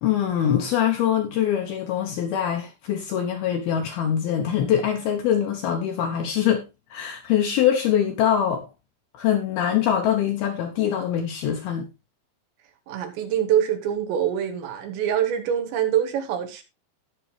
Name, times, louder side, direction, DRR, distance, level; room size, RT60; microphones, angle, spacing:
voice 1, 0.0-6.6 6.9-8.7 9.1-11.9, left 9 dB, 75° left, 2.4 m, -23 dB
voice 2, 12.9-16.6, right 9 dB, 75° right, 3.6 m, -24 dB
17.5 x 6.0 x 3.3 m
omnidirectional pair, 5.5 m